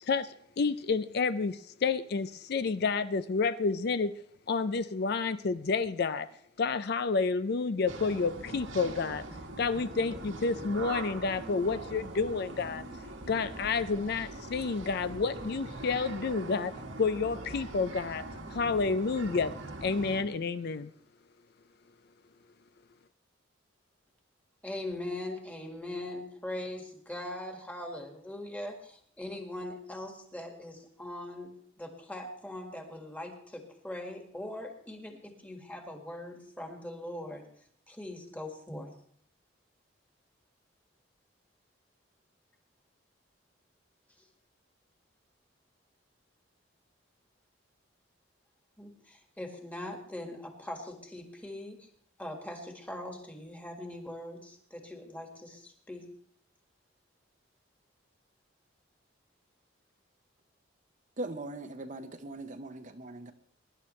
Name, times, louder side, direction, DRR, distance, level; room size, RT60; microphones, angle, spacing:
voice 1, 0.0-4.1 4.5-6.3 6.6-9.2 9.6-12.8 13.3-16.7 17.0-18.2 18.5-19.5 19.8-20.9, left 4 dB, 55° left, 12 dB, 0.4 m, -30 dB
sound 1, 7.9-20.2, right 2 dB, 85° right, 1.8 m, -42 dB
voice 2, 24.6-37.4 37.9-38.9 44.2-44.3 48.8-51.9 52.2-56.1, left 1 dB, 10° left, 3 dB, 1.8 m, -41 dB
voice 3, 61.2-63.3, right 2 dB, 40° right, 8 dB, 0.8 m, -40 dB
23.0 x 11.0 x 3.2 m, 0.64 s
head